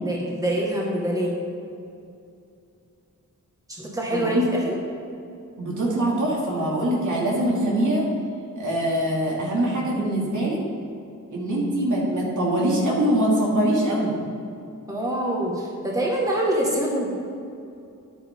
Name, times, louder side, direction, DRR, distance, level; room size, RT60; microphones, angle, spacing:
voice 1, 0.0-1.3 3.7-4.8 14.9-17.1, right 1 dB, 10° right, -3 dB, 1.8 m, -25 dB
voice 2, 4.1-4.4 5.6-8.0 8.5-10.6 11.3-14.2, right 1 dB, 65° right, -4 dB, 2.7 m, -23 dB
9.8 x 9.5 x 3.8 m, 2.6 s
wide cardioid pair, 110°, 33 cm